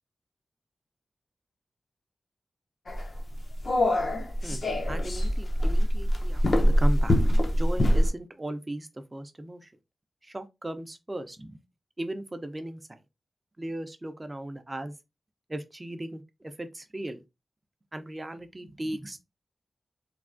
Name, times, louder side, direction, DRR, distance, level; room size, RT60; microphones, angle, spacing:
sound 1, 2.9-8.1, equal, 55° left, 0.6 m, -24 dB
voice 1, 4.4-9.7 10.2-11.6 12.0-13.0 13.6-14.9 15.5-17.2 17.9-19.2, right 1 dB, 25° right, 0.5 m, -37 dB
3.3 x 2.3 x 2.5 m
wide cardioid pair, 75°, 0 cm